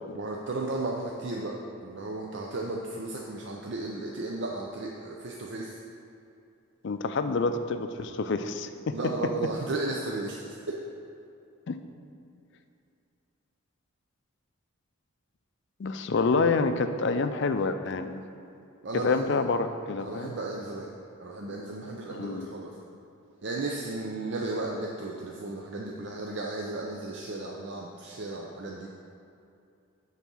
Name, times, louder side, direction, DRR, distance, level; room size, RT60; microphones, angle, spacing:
voice 1, 0.1-5.8 8.9-10.4 18.8-19.4 20.0-20.9 21.2-22.7 23.4-28.9, right 2 dB, 55° right, -1 dB, 0.6 m, -34 dB
voice 2, 6.8-8.9 11.7-11.8 15.8-18.2 19.0-20.3 22.1-22.5, left 4 dB, 55° left, 9 dB, 0.4 m, -27 dB
9.1 x 4.0 x 6.2 m, 2.6 s
head